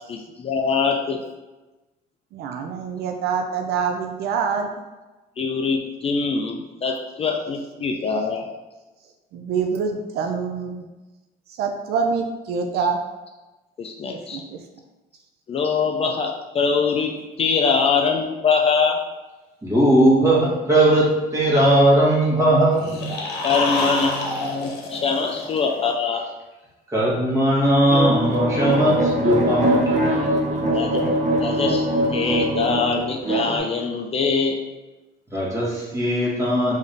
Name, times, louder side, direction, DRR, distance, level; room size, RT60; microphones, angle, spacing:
voice 1, 0.1-1.2 5.4-8.5 13.8-14.4 15.5-19.0 23.4-26.2 30.7-31.1 31.4-31.9 32.1-34.6, left 5 dB, 35° left, 2 dB, 0.4 m, -23 dB
voice 2, 2.3-4.7 9.3-10.9 11.6-13.0 14.3-14.6, right 5 dB, 70° right, 4 dB, 0.4 m, -25 dB
voice 3, 19.6-23.2 23.6-23.9 26.9-30.0 35.3-36.7, right 1 dB, 15° right, -6 dB, 1.4 m, -19 dB
sound 1, 22.7-25.9, left 2 dB, 85° left, 0.8 m, -28 dB
sound 2, 27.9-33.6, right 1 dB, 45° right, 0.7 m, -22 dB
3.6 x 2.6 x 3.5 m, 1.1 s
cardioid pair, 110°, 17 cm